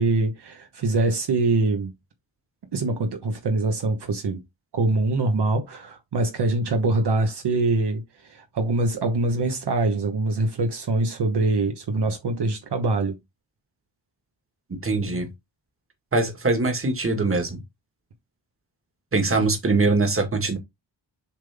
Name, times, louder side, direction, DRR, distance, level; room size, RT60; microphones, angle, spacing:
voice 1, 0.0-1.9 2.7-4.4 4.7-13.2, right 2 dB, 60° right, 1.2 m, -24 dB
voice 2, 14.7-15.3 16.1-17.6 19.1-20.6, right 3 dB, 30° right, 1.8 m, -22 dB
7.3 x 3.7 x 3.5 m
wide cardioid pair, 135°, 45 cm